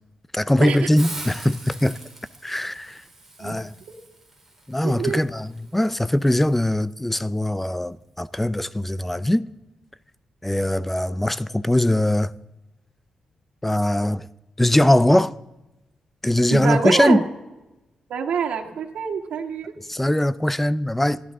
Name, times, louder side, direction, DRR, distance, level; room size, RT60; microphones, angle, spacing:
voice 1, 0.3-2.0 2.4-3.0 3.4-3.7 4.7-9.5 10.4-12.3 13.6-14.3 14.6-15.3 16.2-17.3 19.9-21.2, left 1 dB, 10° left, 0.5 m, -21 dB
Hiss, 1.0-6.6, right 2 dB, 10° right, 3.9 m, -42 dB
voice 2, 4.8-5.2 16.5-17.2 18.1-19.7, right 6 dB, 80° right, 1.8 m, -25 dB
26.0 x 12.0 x 3.7 m
cardioid pair, 100°, 2 cm